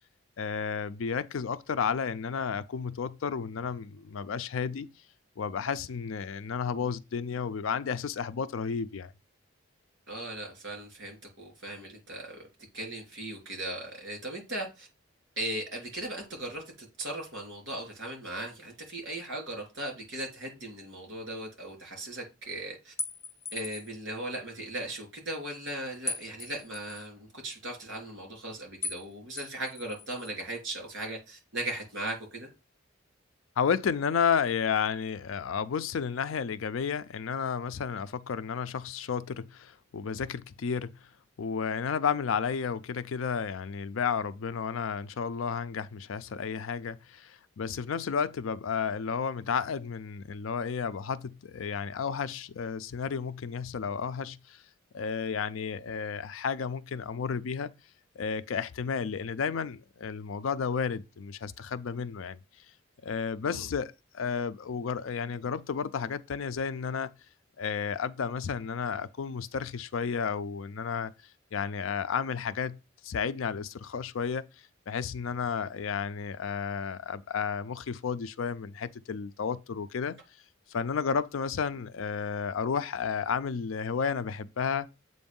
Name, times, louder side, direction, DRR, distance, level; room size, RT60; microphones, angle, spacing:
voice 1, 0.4-4.9 5.4-9.1 33.6-40.9 41.4-54.6 54.9-57.7 58.2-62.4 63.0-67.1 67.6-71.1 71.5-72.8 73.0-74.5 74.9-80.2 80.7-84.9, left 6 dB, 80° left, 0.4 m, -32 dB
voice 2, 10.1-12.5 12.7-14.9 15.4-22.9 23.5-32.5 63.4-63.7, right 1 dB, 60° right, 3.0 m, -38 dB
sound 1, 23.0-24.0 26.1-27.1 28.8-29.1 29.4-30.3, left 3 dB, 15° left, 0.4 m, -38 dB
7.7 x 2.6 x 5.3 m
head